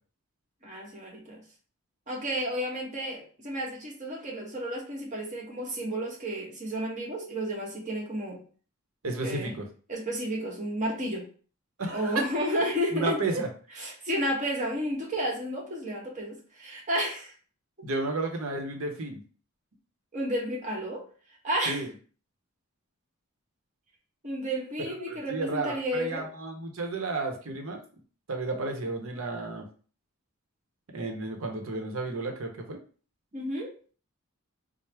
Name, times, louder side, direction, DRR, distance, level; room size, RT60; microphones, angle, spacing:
voice 1, 0.6-1.4 2.1-8.4 9.2-9.5 9.9-11.3 11.9-13.4 13.7-17.3 20.1-21.0 21.4-21.8 24.2-26.2 33.3-33.7, equal, 35° right, -2 dB, 1.1 m, -32 dB
voice 2, 9.0-9.7 11.8-12.2 12.9-13.5 17.8-19.2 21.7-21.9 24.8-27.8 28.3-29.6 30.9-32.8, right 2 dB, 85° right, 3 dB, 0.8 m, -32 dB
4.5 x 2.0 x 3.3 m, 0.41 s
head